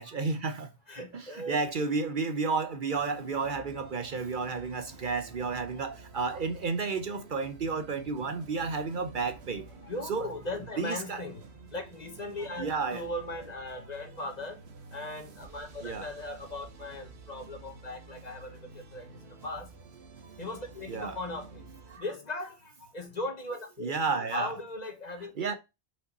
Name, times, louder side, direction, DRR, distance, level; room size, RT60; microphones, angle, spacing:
voice 1, 0.0-0.7 1.1-9.6 10.1-10.3 10.8-11.2 12.6-13.0 15.8-16.1 20.9-21.2 21.9-22.0 23.8-24.5 25.4-25.5, right 4 dB, 55° right, 0.8 m, -32 dB
voice 2, 0.9-1.6 1.9-2.0 5.5-5.7 8.6-8.7 9.8-11.4 11.7-14.6 14.9-19.7 20.4-21.7 22.0-25.3, left 2 dB, 40° left, 1.3 m, -38 dB
sound 1, 2.9-22.0, right 4 dB, 75° right, 1.3 m, -51 dB
5.6 x 5.2 x 4.0 m
omnidirectional pair, 1.1 m